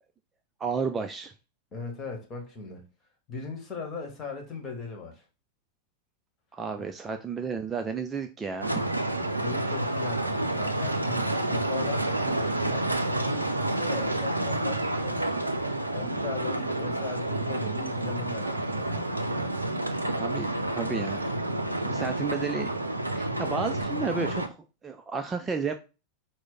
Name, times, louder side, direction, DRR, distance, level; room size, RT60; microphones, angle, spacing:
voice 1, 0.6-1.3 6.5-8.8 20.2-20.5 20.8-21.3 21.8-22.7 23.1-24.6 24.8-25.7, right 5 dB, 20° right, 0.4 m, -32 dB
voice 2, 1.7-2.8 3.3-5.2 6.8-6.9 9.1-15.5 15.9-19.1, left 4 dB, 25° left, 1.4 m, -39 dB
sound 1, 8.6-24.5, right 1 dB, 85° right, 0.4 m, -29 dB
4.6 x 2.1 x 4.0 m
figure-of-eight pair, 90°, 0 cm